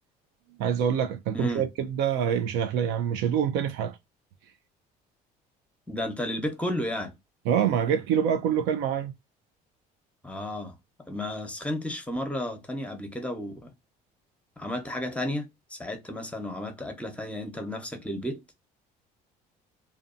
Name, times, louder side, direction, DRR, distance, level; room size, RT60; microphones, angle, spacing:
voice 1, 0.6-4.0 7.5-9.1, right 8 dB, 80° right, 0.5 m, -26 dB
voice 2, 1.3-1.7 5.9-7.1 10.2-10.8 11.1-13.7 14.6-18.4, left 1 dB, 5° left, 0.8 m, -33 dB
2.5 x 2.3 x 2.5 m
supercardioid pair, 85°, 18 cm